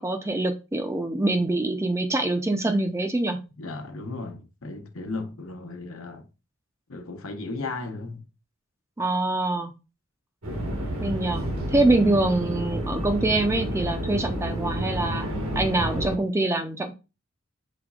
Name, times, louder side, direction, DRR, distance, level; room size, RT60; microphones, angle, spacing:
voice 1, 0.0-3.4 9.0-9.7 11.0-16.9, right 2 dB, 15° right, 0.4 m, -25 dB
voice 2, 3.6-6.3 6.9-8.2, left 3 dB, 70° left, 0.9 m, -35 dB
sound 1, 10.4-16.2, equal, 80° right, 1.4 m, -30 dB
5.1 x 4.0 x 2.3 m
head